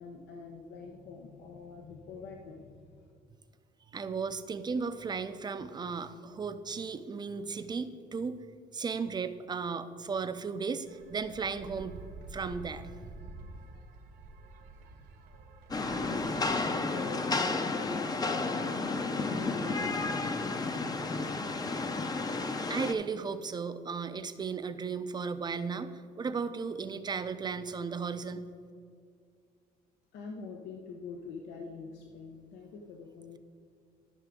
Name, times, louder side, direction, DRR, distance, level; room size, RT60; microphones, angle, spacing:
voice 1, 0.0-3.1 15.7-21.3 30.1-33.4, left 5 dB, 85° left, 2 dB, 0.8 m, -45 dB
voice 2, 3.9-8.4 8.7-12.0 12.3-12.8 22.7-28.4, right 5 dB, 25° right, 11 dB, 0.5 m, -35 dB
sound 1, 10.9-16.6, right 2 dB, 70° right, 1.3 m, -48 dB
Rain, 15.7-22.9, left 3 dB, 20° left, 0.6 m, -32 dB
13.0 x 5.9 x 3.7 m, 2.3 s
cardioid pair, 110°, 17 cm